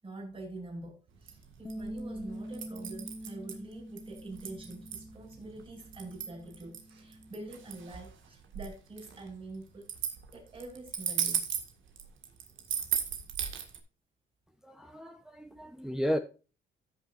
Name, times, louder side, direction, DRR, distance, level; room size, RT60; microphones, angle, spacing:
voice 1, 0.0-11.5, right 2 dB, 25° right, -1 dB, 5.7 m, -46 dB
sound 1, 1.1-13.8, right 9 dB, 75° right, 1.9 m, -37 dB
Bass guitar, 1.6-7.9, equal, 15° left, 1.4 m, -45 dB
voice 2, 14.6-16.2, equal, 5° right, 5 dB, 0.9 m, -33 dB
14.5 x 6.7 x 2.6 m, 0.33 s
cardioid pair, 90°, 20 cm